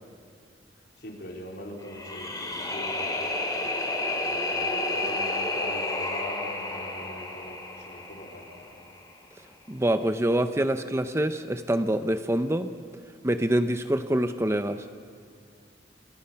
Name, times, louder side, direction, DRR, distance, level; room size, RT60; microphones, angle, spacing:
voice 1, 1.0-8.8, left 1 dB, 60° left, 0 dB, 4.1 m, -42 dB
sound 1, 1.8-8.9, left 2 dB, 20° left, 3.0 m, -31 dB
voice 2, 9.7-12.7 13.2-14.9, right 1 dB, 15° right, 9 dB, 0.7 m, -25 dB
27.5 x 27.0 x 5.8 m, 2.3 s
head